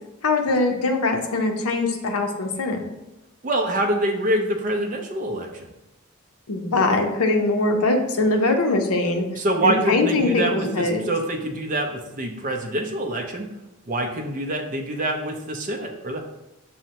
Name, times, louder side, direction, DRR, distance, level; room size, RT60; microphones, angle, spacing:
voice 1, 0.2-2.8 6.5-9.3 9.6-11.0, left 2 dB, 80° left, 4 dB, 0.6 m, -22 dB
voice 2, 3.4-5.7 9.4-13.5 13.9-16.2, right 1 dB, 35° right, 2 dB, 0.4 m, -25 dB
6.2 x 2.1 x 2.8 m, 0.94 s
head